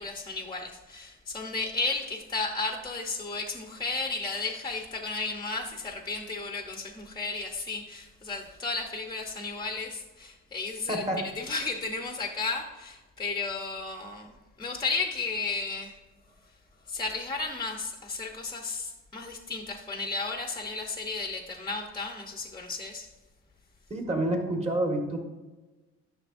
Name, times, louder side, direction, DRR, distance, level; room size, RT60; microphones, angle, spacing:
voice 1, 0.0-14.3 14.6-16.0 16.9-23.1, left 3 dB, 15° left, 3 dB, 0.9 m, -33 dB
voice 2, 10.9-11.3 23.9-25.2, right 1 dB, 20° right, 2 dB, 1.7 m, -28 dB
11.0 x 6.3 x 2.6 m, 1.2 s
cardioid pair, 90°, 30 cm